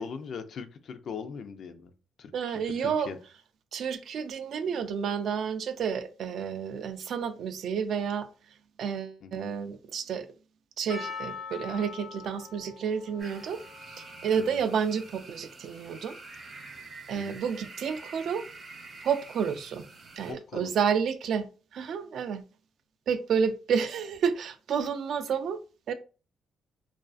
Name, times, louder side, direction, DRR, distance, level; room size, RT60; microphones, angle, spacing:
voice 1, 0.0-1.9 2.2-3.2 9.2-9.5 14.3-14.6 17.1-17.4 20.3-20.7, left 6 dB, 60° left, 0.3 m, -40 dB
voice 2, 2.3-3.1 3.7-8.3 8.8-10.3 10.8-13.6 13.9-16.1 17.1-18.5 19.0-19.8 20.2-22.4 23.1-25.6 25.9-26.0, right 7 dB, 65° right, 0.3 m, -30 dB
Percussion, 10.9-16.1, left 5 dB, 75° left, 0.9 m, -44 dB
sound 1, 13.2-20.3, right 3 dB, 45° right, 0.8 m, -47 dB
2.4 x 2.3 x 2.3 m
cardioid pair, 90°, 0 cm